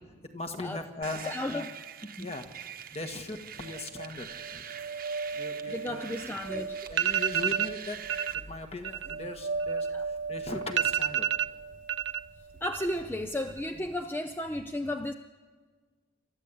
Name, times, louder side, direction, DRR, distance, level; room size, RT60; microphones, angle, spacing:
voice 1, 0.3-1.7 2.2-2.5 2.9-4.3 4.5-4.6 5.3-6.4 6.8-8.0 8.5-11.3, left 2 dB, 35° left, 5 dB, 1.7 m, -39 dB
sound 1, 1.0-8.3, right 8 dB, 50° right, 1.1 m, -44 dB
voice 2, 1.3-1.7 2.2-2.3 5.7-6.8 9.9-10.0 12.6-15.1, left 1 dB, 10° left, 7 dB, 0.6 m, -34 dB
sound 2, 3.6-12.8, right 4 dB, 90° right, 1.2 m, -38 dB
sound 3, 6.5-6.6 6.9-7.7 8.1-8.4 8.7-10.2 10.5-10.6 10.8-12.2 12.5-13.1 13.4-13.9, right 10 dB, 75° right, 0.6 m, -29 dB
28.5 x 13.5 x 8.5 m, 1.5 s
head